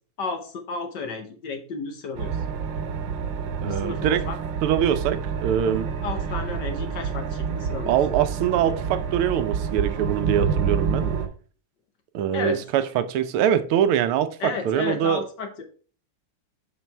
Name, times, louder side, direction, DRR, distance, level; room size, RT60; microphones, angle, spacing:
voice 1, 0.2-2.4 3.6-4.4 6.0-7.9 12.3-12.6 14.4-15.6, left 4 dB, 60° left, 1.4 m, -32 dB
sound 1, 2.1-11.3, right 6 dB, 65° right, 1.5 m, -28 dB
voice 2, 3.6-4.3 4.6-5.9 7.9-11.1 12.1-15.2, right 9 dB, 80° right, 1.6 m, -23 dB
7.4 x 5.3 x 3.4 m
omnidirectional pair, 2.4 m